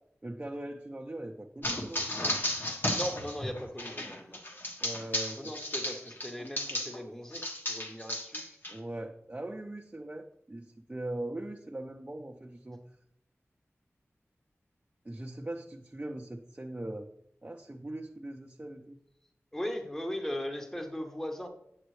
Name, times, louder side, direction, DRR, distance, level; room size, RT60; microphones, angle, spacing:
voice 1, 0.2-2.0 4.8-5.4 8.7-12.8 15.0-17.1 17.4-19.0, right 1 dB, 25° right, 2 dB, 0.6 m, -40 dB
sound 1, 1.6-7.0 7.3-8.7, left 1 dB, 45° left, 1.3 m, -34 dB
voice 2, 2.9-4.4 5.4-8.6 19.5-21.5, equal, 10° left, 5 dB, 1.0 m, -38 dB
8.9 x 7.2 x 3.2 m, 0.74 s
wide cardioid pair, 85°, 5 cm